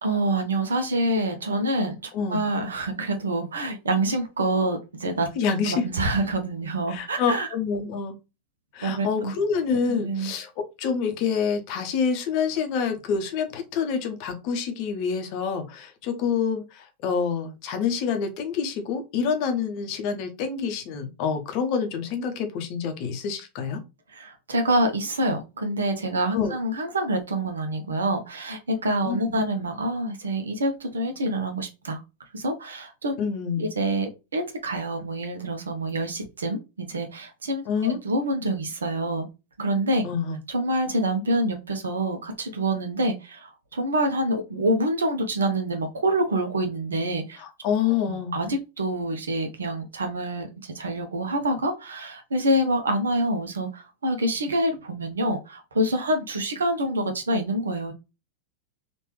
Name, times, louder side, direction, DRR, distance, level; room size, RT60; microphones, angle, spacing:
voice 1, 0.0-5.3 5.7-7.5 8.8-9.3 9.9-10.3 24.1-32.0 32.3-33.1 33.6-39.3 39.6-40.0 40.5-47.4 48.1-57.9, right 1 dB, 70° right, 5 dB, 0.7 m, -26 dB
voice 2, 5.4-5.9 6.9-8.2 8.7-10.5 10.8-23.8 26.3-26.6 29.0-29.4 33.2-33.7 37.7-38.0 40.0-40.4 47.4-48.4, left 6 dB, 45° left, 6 dB, 0.7 m, -27 dB
3.2 x 2.5 x 3.0 m, 0.27 s
figure-of-eight pair, 90°, 0 cm